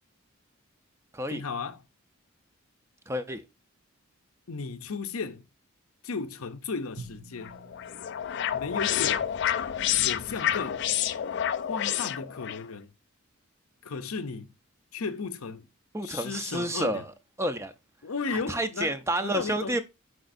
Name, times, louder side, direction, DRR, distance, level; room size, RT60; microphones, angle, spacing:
voice 1, 1.3-1.8 4.5-5.4 6.0-7.5 8.5-9.3 10.0-10.8 11.7-12.9 13.8-14.5 14.9-15.7 16.0-17.0 18.0-19.0 19.2-19.8, left 4 dB, 80° left, 0.7 m, -35 dB
voice 2, 3.1-3.4 15.9-17.0 17.4-17.7 18.3-19.8, right 1 dB, 15° right, 0.6 m, -29 dB
Drum, 7.0-9.9, right 3 dB, 70° right, 1.5 m, -50 dB
sound 1, 7.4-12.6, left 10 dB, 50° left, 0.4 m, -29 dB
8.0 x 5.2 x 2.6 m
head